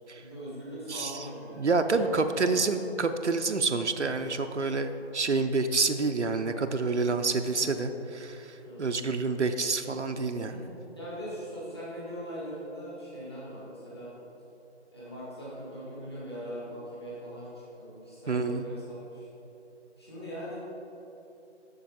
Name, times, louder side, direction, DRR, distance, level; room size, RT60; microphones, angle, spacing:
voice 1, 0.2-1.7 2.0-2.8 8.6-8.9 10.3-10.7 10.9-14.1 14.9-17.5 17.8-19.3 20.0-20.6, equal, 20° left, -9 dB, 1.6 m, -41 dB
voice 2, 0.9-1.3 1.6-10.5 18.3-18.7, right 3 dB, 75° right, 7 dB, 0.6 m, -28 dB
7.1 x 6.8 x 4.8 m, 2.9 s
figure-of-eight pair, 170°, 35 cm